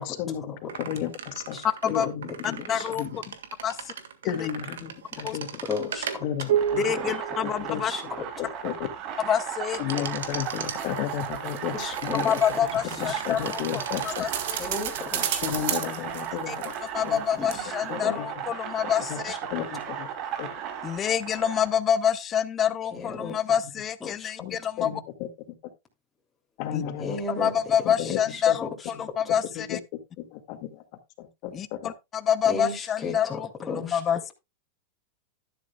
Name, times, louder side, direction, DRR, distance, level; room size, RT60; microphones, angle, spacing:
voice 1, 0.0-1.6 1.9-2.7 2.9-3.3 4.3-5.5 6.2-6.8 7.4-7.8 8.4-8.9 9.8-12.3 12.8-14.3 15.4-17.2 17.9-18.3 18.8-19.2 19.5-20.1 20.4-20.5 24.4-25.3 26.6-27.2 27.9-28.2 28.5-29.1 29.4-29.8 30.2-30.8 31.2-31.9, left 10 dB, 55° left, 1.9 m, -33 dB
sound 1, 0.7-8.5 9.7-10.8 11.8-14.9, right 8 dB, 85° right, 1.7 m, -34 dB
voice 2, 1.5-2.1 2.7-2.9 5.6-6.2 6.8-7.1 7.8-8.5 11.7-12.4 13.0-13.2 14.6-15.4 17.4-17.5 17.9-18.2 19.3-19.4 22.9-23.4 24.0-24.3 27.0-27.5 28.0-28.4 32.4-34.0, left 3 dB, 15° left, 3.2 m, -35 dB
voice 3, 2.7-3.0 3.6-3.9 5.2-5.4 6.8-7.9 9.3-9.8 12.1-14.6 16.5-16.6 16.9-19.3 20.8-24.9 26.7-26.8 27.4-29.8 31.5-34.3, left 9 dB, 30° left, 0.9 m, -27 dB
sound 2, 6.5-21.7, right 9 dB, 45° right, 2.3 m, -36 dB
sound 3, 10.2-17.2 17.5-17.6, right 10 dB, 65° right, 1.8 m, -35 dB
11.5 x 10.5 x 2.3 m
hypercardioid pair, 110°, 0 cm